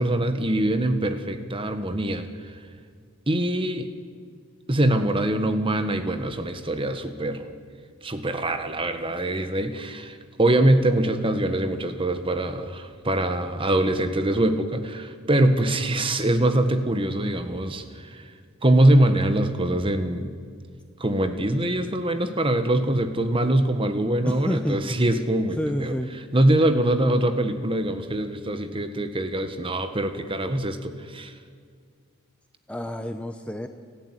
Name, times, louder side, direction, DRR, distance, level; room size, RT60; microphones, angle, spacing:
voice 1, 0.0-2.3 3.3-3.9 4.7-7.5 8.0-18.3 18.6-20.3 21.0-25.9 26.3-31.3, right 1 dB, 25° right, 9 dB, 1.5 m, -23 dB
voice 2, 24.3-24.8 25.6-26.1 32.7-33.7, equal, 5° left, 7 dB, 0.8 m, -29 dB
30.0 x 12.0 x 9.8 m, 2.1 s
head